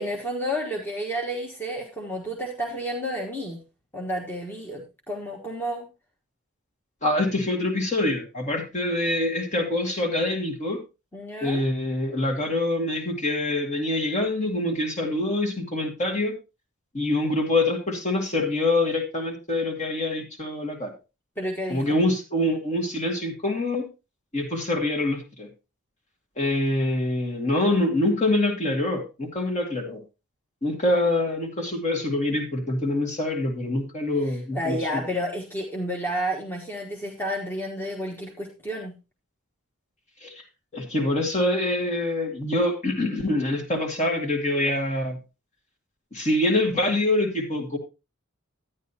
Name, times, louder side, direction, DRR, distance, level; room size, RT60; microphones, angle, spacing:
voice 1, 0.0-3.6 3.9-5.9 11.1-11.6 21.4-22.0 34.3-39.0, equal, 10° left, 0 dB, 1.4 m, -31 dB
voice 2, 7.0-10.8 11.4-16.3 16.9-20.9 21.7-23.9 24.3-25.5 26.4-30.0 30.6-35.0 40.2-40.3 40.7-45.2 46.1-47.8, left 1 dB, 35° left, 3 dB, 2.2 m, -25 dB
12.0 x 9.7 x 2.8 m, 0.28 s
head